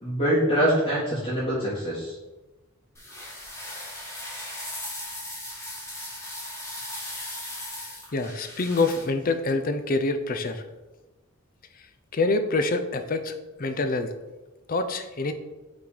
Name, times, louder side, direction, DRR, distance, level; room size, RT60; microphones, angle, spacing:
voice 1, 0.0-2.1, equal, 30° left, -11 dB, 1.9 m, -24 dB
sound 1, 2.9-9.1, left 1 dB, 15° left, 2.0 m, -37 dB
voice 2, 8.1-10.6 12.1-14.1 14.7-15.3, left 3 dB, 45° left, 9 dB, 0.5 m, -26 dB
5.8 x 4.0 x 4.9 m, 1.1 s
head